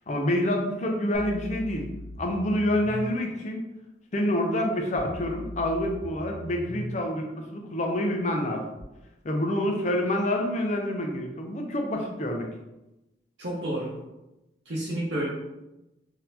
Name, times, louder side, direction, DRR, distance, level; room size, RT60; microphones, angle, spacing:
voice 1, 0.1-1.9 2.2-3.6 4.1-8.6 9.2-12.5, left 1 dB, 40° left, 2 dB, 0.5 m, -27 dB
sound 1, 1.1-3.1 4.9-6.9 8.8-8.9, left 1 dB, 70° left, 0.8 m, -39 dB
voice 2, 13.4-14.0 14.7-15.3, right 1 dB, 75° right, -6 dB, 0.8 m, -30 dB
3.9 x 2.8 x 2.7 m, 0.97 s
head